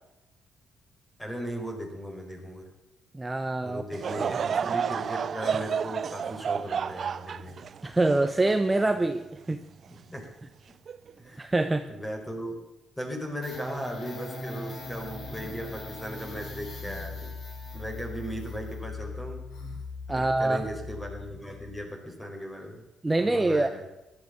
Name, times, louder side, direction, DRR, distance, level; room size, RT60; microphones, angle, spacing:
voice 1, 1.2-2.7 3.6-7.7 9.9-10.3 11.2-11.5 11.9-12.6 13.0-17.3 17.7-19.4 20.1-22.8 23.2-23.8, equal, 10° left, 2 dB, 4.9 m, -37 dB
voice 2, 3.1-3.8 4.2-4.4 7.8-9.6 11.4-11.9 20.1-20.6 23.0-23.7, right 2 dB, 15° right, 8 dB, 0.9 m, -25 dB
Laughter / Crowd, 3.9-9.4 9.9-10.0 10.9-11.1, right 7 dB, 50° right, 0.5 m, -31 dB
sound 1, 13.4-21.9, left 3 dB, 50° left, 4.6 m, -40 dB
sound 2, 15.2-15.6 16.7-17.2 18.2-18.6 19.5-19.9, left 1 dB, 85° left, 3.7 m, -48 dB
15.5 x 12.0 x 7.0 m, 0.98 s
cardioid pair, 90°, 0 cm